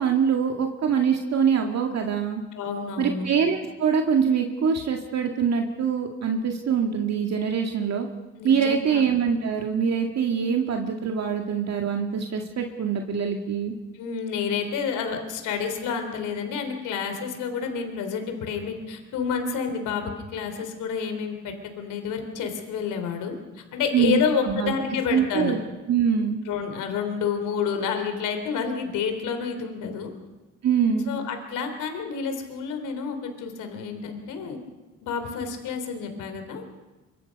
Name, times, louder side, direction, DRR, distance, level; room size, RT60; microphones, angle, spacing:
voice 1, 0.0-2.4 3.0-8.1 8.4-13.7 23.9-24.2 24.5-24.7 25.1-25.6 25.9-26.4 30.6-31.1, right 7 dB, 60° right, 3 dB, 2.0 m, -24 dB
voice 2, 2.5-3.3 8.4-9.0 13.9-25.5 26.5-30.1 31.1-34.6 35.0-36.6, left 6 dB, 90° left, 6 dB, 3.5 m, -29 dB
25.0 x 24.5 x 5.4 m, 1.2 s
cardioid pair, 90°, 30 cm